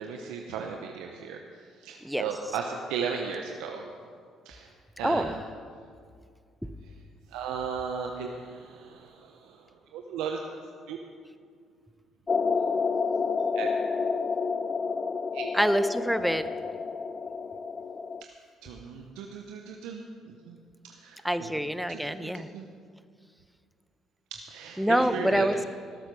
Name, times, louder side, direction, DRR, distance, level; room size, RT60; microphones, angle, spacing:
voice 1, 0.0-1.4 1.8-3.8 4.4-4.7 5.0-5.4 7.3-10.4 10.9-11.0 13.5-13.7 15.3-15.5 18.6-20.6 20.8-21.5 21.9-22.7 24.3-25.5, right 6 dB, 80° right, 2 dB, 0.9 m, -36 dB
sound 1, 12.3-18.2, left 5 dB, 40° left, 0.4 m, -29 dB
voice 2, 15.5-16.5 21.2-22.5 24.8-25.6, equal, ahead, 11 dB, 0.9 m, -26 dB
18.5 x 7.9 x 6.3 m, 2.2 s
supercardioid pair, 60°, 0 cm